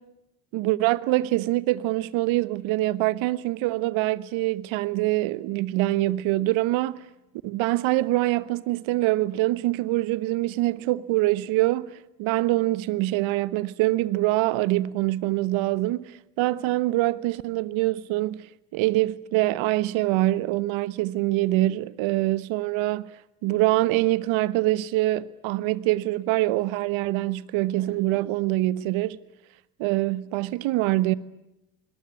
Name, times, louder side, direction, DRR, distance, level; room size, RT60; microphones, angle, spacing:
voice 1, 0.5-7.0 7.4-18.5 18.7-23.1 23.4-29.2 29.8-31.1, right 17 dB, 65° right, 1.3 m, -24 dB
26.0 x 21.5 x 9.8 m
hypercardioid pair, 55°, 49 cm